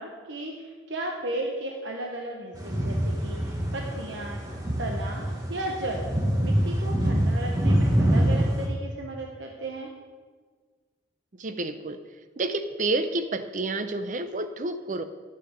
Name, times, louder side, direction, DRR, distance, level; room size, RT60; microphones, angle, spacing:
voice 1, 0.0-4.4 4.8-5.2 5.5-6.0 6.4-9.9, right 1 dB, 80° right, 0 dB, 1.2 m, -35 dB
sound 1, 2.5-8.7, equal, 20° right, 1.4 m, -25 dB
voice 2, 11.4-12.0 12.4-15.0, right 2 dB, 45° right, 10 dB, 0.6 m, -29 dB
13.5 x 6.9 x 5.2 m, 1.5 s
head